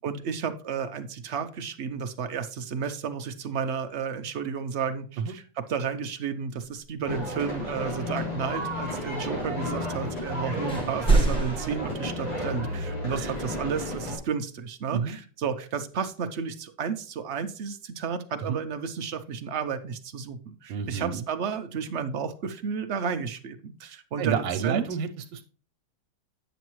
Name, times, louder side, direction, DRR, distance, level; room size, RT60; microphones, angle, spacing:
voice 1, 0.0-24.8, right 6 dB, 70° right, 8 dB, 0.6 m, -32 dB
sound 1, 7.0-14.2, left 1 dB, 90° left, 5.7 m, -33 dB
sound 2, 10.7-11.8, right 3 dB, 5° left, 0.9 m, -23 dB
voice 2, 20.7-21.2 24.2-25.4, right 7 dB, 90° right, 8 dB, 1.4 m, -30 dB
9.2 x 7.0 x 3.0 m, 0.39 s
omnidirectional pair, 1.9 m